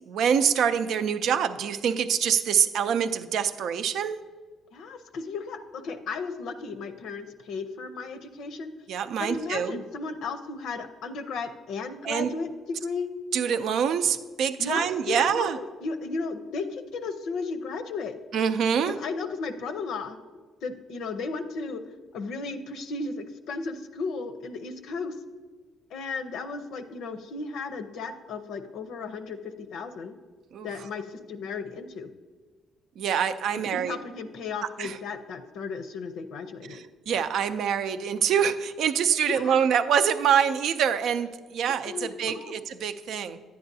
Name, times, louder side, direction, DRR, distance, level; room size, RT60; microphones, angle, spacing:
voice 1, 0.1-4.2 8.9-9.8 12.0-12.3 13.3-15.6 18.3-19.0 30.5-30.7 33.0-34.0 34.8-35.0 36.7-43.4, right 8 dB, 70° right, 10 dB, 0.4 m, -25 dB
voice 2, 4.7-8.7 9.2-12.5 12.8-13.1 14.6-18.2 18.8-20.2 20.6-21.8 22.1-25.2 25.9-30.2 30.6-32.1 33.7-36.8 39.3-39.6 41.9-42.6, left 4 dB, 75° left, 8 dB, 0.6 m, -35 dB
10.5 x 9.3 x 2.7 m, 1.4 s
cardioid pair, 130°, 0 cm